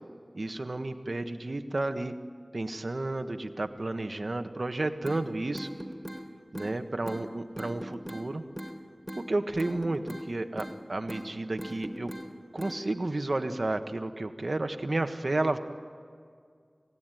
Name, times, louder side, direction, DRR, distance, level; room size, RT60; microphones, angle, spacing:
voice 1, 0.3-2.2 2.5-5.7 6.5-8.4 9.2-12.1 12.5-15.6, right 2 dB, 65° right, 7 dB, 1.4 m, -32 dB
sound 1, 5.0-5.2 5.5-6.2 6.5-6.7 7.1-7.2 7.6-8.2 8.6-8.8 9.1-9.2 9.6-10.3 10.6-10.8 11.1-11.3 11.6-12.3 12.6-12.8, equal, 5° left, 3.0 m, -39 dB
29.5 x 17.0 x 9.3 m, 2.1 s
wide cardioid pair, 45°, 0 cm